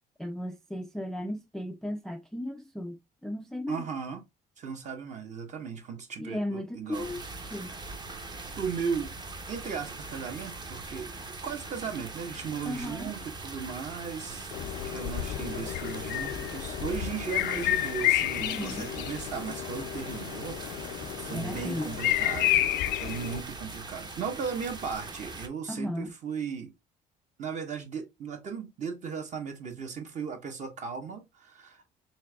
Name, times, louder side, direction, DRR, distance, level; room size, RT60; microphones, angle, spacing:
voice 1, 0.2-3.8 6.2-7.8 12.7-13.1 18.4-18.9 21.3-21.9 25.7-26.1, left 1 dB, 5° left, 0.3 m, -36 dB
voice 2, 3.7-4.2 4.6-7.1 7.4-7.6 8.6-9.1 9.5-11.1 11.4-14.5 14.8-22.7 23.0-26.7 27.4-31.8, right 6 dB, 45° right, 1.2 m, -36 dB
sound 1, 6.9-25.5, right 3 dB, 25° right, 0.8 m, -42 dB
sound 2, 14.5-23.4, left 14 dB, 80° left, 0.4 m, -30 dB
4.5 x 3.3 x 2.3 m
cardioid pair, 110°, 17 cm